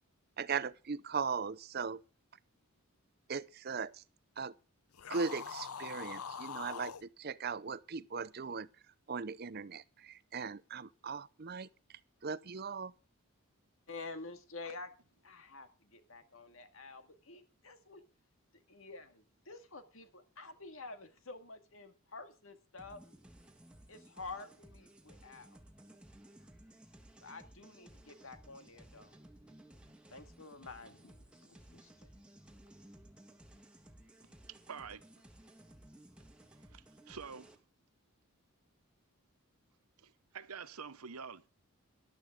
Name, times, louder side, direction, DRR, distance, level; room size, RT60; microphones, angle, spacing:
voice 1, 0.4-2.0 3.3-4.0 4.4-4.5 5.1-8.7 9.1-11.7 12.2-12.9, right 5 dB, 45° right, 0.6 m, -38 dB
sound 1, 4.9-7.0, left 6 dB, 85° left, 0.7 m, -43 dB
voice 2, 13.9-14.9 15.2-18.0 18.7-23.0 23.9-25.6 27.2-29.2 30.1-32.1, left 3 dB, 65° left, 2.0 m, -49 dB
sound 2, 22.8-37.6, right 1 dB, 5° right, 1.6 m, -58 dB
voice 3, 34.5-35.2 36.6-37.5 40.0-41.5, right 6 dB, 90° right, 0.9 m, -48 dB
14.0 x 12.0 x 3.6 m
head